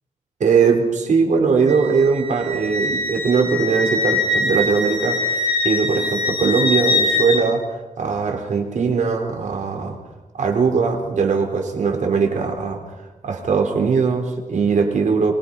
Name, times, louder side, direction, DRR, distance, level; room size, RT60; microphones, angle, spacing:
voice 1, 0.4-7.6 8.0-10.0 10.4-12.8 13.2-15.4, right 5 dB, 70° right, 3 dB, 4.3 m, -20 dB
Wind instrument woodwind instrument, 1.7-7.4, left 2 dB, 40° left, 6.4 m, -23 dB
25.5 x 21.5 x 5.6 m, 1.1 s
wide cardioid pair, 110°, 13 cm